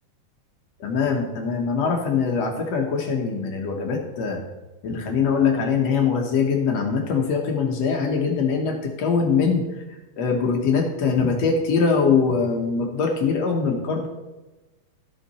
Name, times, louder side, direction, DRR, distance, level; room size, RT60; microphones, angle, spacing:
voice 1, 0.8-4.4 4.8-9.6 10.2-14.1, left 5 dB, 60° left, 1 dB, 1.9 m, -22 dB
15.0 x 5.8 x 4.3 m, 1.1 s
omnidirectional pair, 4.3 m